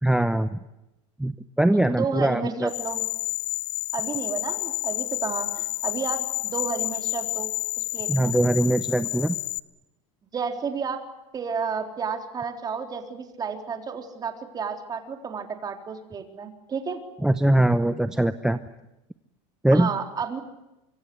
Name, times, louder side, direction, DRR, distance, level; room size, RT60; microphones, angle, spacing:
voice 1, 0.0-0.6 1.2-1.3 1.6-2.7 8.1-9.4 17.2-18.6 19.6-19.9, right 1 dB, 5° right, 12 dB, 0.9 m, -21 dB
voice 2, 1.9-3.0 3.9-7.5 7.8-8.4 10.3-11.0 11.3-17.0 19.7-20.4, right 5 dB, 25° right, 5 dB, 3.9 m, -31 dB
sound 1, 2.7-9.6, left 23 dB, 65° left, 1.1 m, -30 dB
25.0 x 25.0 x 8.0 m, 0.93 s
supercardioid pair, 130°, 17 cm